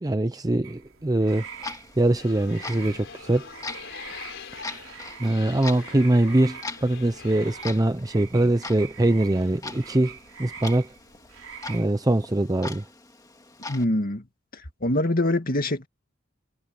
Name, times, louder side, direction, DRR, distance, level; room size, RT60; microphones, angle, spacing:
voice 1, 0.0-3.5 4.6-4.8 5.2-10.9 11.7-12.8, right 1 dB, 20° right, 0.6 m, -23 dB
frogs a few minimal traffic noise, 0.6-11.9, right 7 dB, 85° right, 3.8 m, -44 dB
Clock, 1.3-13.8, left 3 dB, 15° left, 2.1 m, -42 dB
sound 1, 2.2-7.8, left 5 dB, 65° left, 4.3 m, -43 dB
voice 2, 13.7-14.2 14.5-15.9, left 1 dB, 45° left, 2.2 m, -24 dB
head